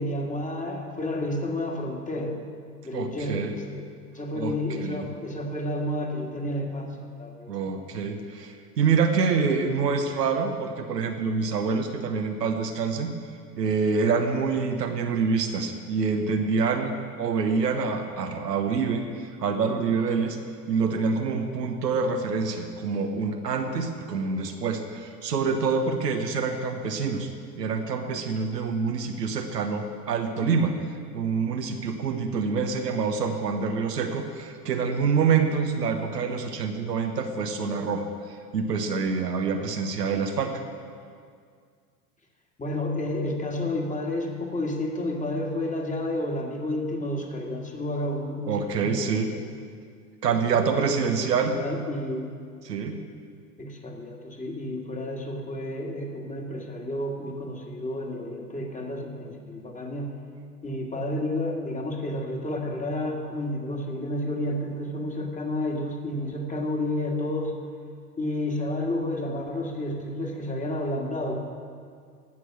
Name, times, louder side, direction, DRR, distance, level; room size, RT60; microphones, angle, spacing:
voice 1, 0.0-2.4 2.8-3.8 4.1-7.8 42.6-49.4 50.6-52.3 53.6-60.2 60.6-67.6 68.2-71.3, left 1 dB, 15° left, 1 dB, 1.9 m, -31 dB
voice 2, 2.9-3.5 4.3-4.5 4.8-5.1 7.5-13.1 13.6-16.9 17.2-20.4 20.7-27.3 27.6-30.7 31.1-38.1 38.5-40.6 48.5-49.3 50.2-51.6 52.6-52.9, right 5 dB, 85° right, 4 dB, 1.2 m, -26 dB
16.0 x 6.3 x 6.0 m, 2.1 s
hypercardioid pair, 85°, 47 cm